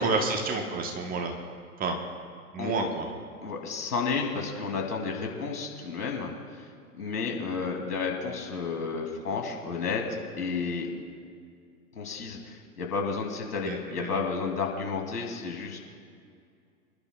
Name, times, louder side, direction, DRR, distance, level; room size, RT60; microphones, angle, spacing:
voice 1, 0.0-1.3 1.8-2.0 2.5-3.1 13.6-14.1, right 3 dB, 20° right, 3 dB, 1.1 m, -29 dB
voice 2, 2.6-2.9 3.4-6.7 7.0-10.0 10.4-10.9 11.9-15.8, left 5 dB, 75° left, 1 dB, 2.9 m, -32 dB
27.0 x 11.5 x 2.3 m, 2.2 s
figure-of-eight pair, 110°, 47 cm